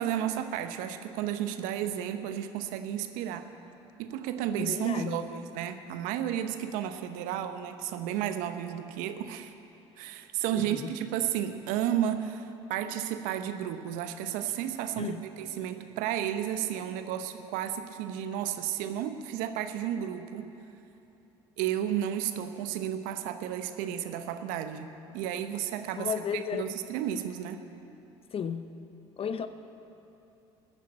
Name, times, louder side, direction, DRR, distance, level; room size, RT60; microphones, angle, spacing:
voice 1, 0.0-3.5 4.0-9.5 10.0-20.5 21.6-27.6, right 10 dB, 70° right, 9 dB, 0.9 m, -32 dB
voice 2, 4.6-5.3 10.5-10.9 15.0-15.2 26.0-26.7 28.3-28.7 29.2-29.5, left 7 dB, 40° left, 11 dB, 0.8 m, -33 dB
14.5 x 9.1 x 8.7 m, 2.9 s
hypercardioid pair, 65°, 14 cm